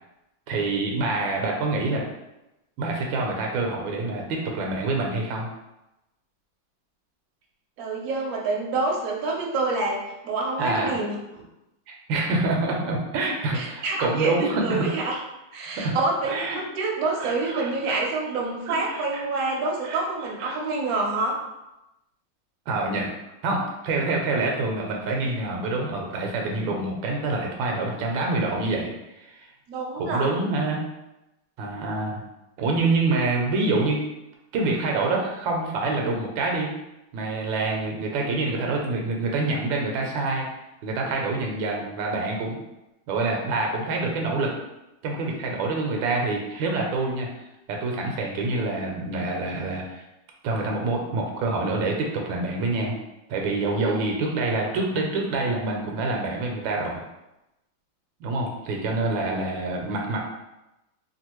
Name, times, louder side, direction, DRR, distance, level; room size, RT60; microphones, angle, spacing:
voice 1, 0.5-2.0 2.8-5.5 10.6-11.0 11.9-14.9 15.8-15.9 16.3-16.6 17.2-18.0 18.7-19.2 19.8-20.0 20.4-20.6 22.7-23.1 23.4-28.9 29.2-29.4 30.0-30.8 31.6-32.2 32.6-34.0 34.5-36.7 37.1-40.5 40.8-42.6 43.1-44.5 45.0-47.3 47.7-50.0 50.4-53.0 53.3-57.0 58.2-60.2, right 2 dB, 80° right, 0 dB, 1.3 m, -26 dB
voice 2, 7.8-11.4 13.2-15.2 15.5-21.4 29.7-30.3 53.8-54.1, right 3 dB, 65° right, -1 dB, 0.9 m, -27 dB
3.2 x 2.4 x 2.9 m, 0.93 s
omnidirectional pair, 2.1 m